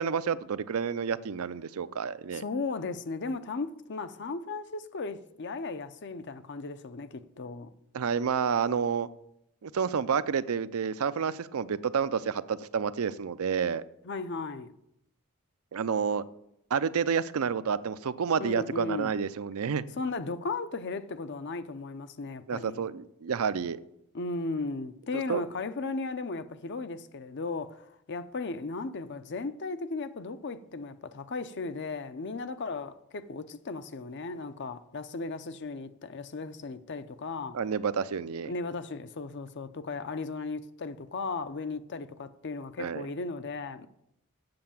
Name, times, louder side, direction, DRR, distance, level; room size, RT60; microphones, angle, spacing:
voice 1, 0.0-2.4 7.9-9.1 9.6-13.8 15.7-16.2 16.7-19.8 22.5-23.8 25.3-25.4 37.5-38.5 42.8-43.0, right 6 dB, 80° right, 0.5 m, -29 dB
voice 2, 2.3-7.7 14.0-14.7 18.4-19.1 20.0-22.9 24.1-37.6 38.5-43.9, left 3 dB, 55° left, 0.6 m, -36 dB
7.8 x 7.5 x 7.1 m
head